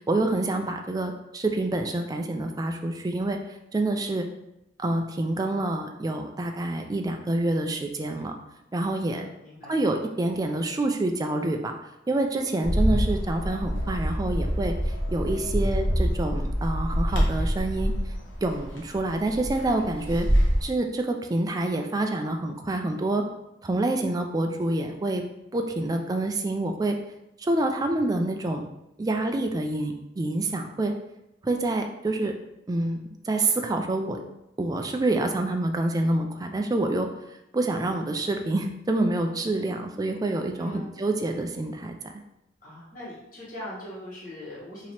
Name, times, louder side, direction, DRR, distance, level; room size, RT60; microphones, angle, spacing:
voice 1, 0.0-3.4 3.7-4.3 4.8-8.3 8.7-9.2 9.7-11.7 12.1-17.9 18.4-20.3 20.6-23.2 23.6-25.2 25.5-27.0 27.5-28.7 29.0-30.9 31.4-32.3 32.7-34.2 34.6-37.1 37.5-42.0, right 2 dB, 20° right, 4 dB, 0.3 m, -27 dB
voice 2, 9.1-9.8 40.6-40.9 42.6-44.9, left 1 dB, 45° left, -6 dB, 1.4 m, -41 dB
Bird, 12.6-20.6, equal, 80° left, 1.0 m, -26 dB
3.0 x 2.8 x 4.2 m, 0.87 s
head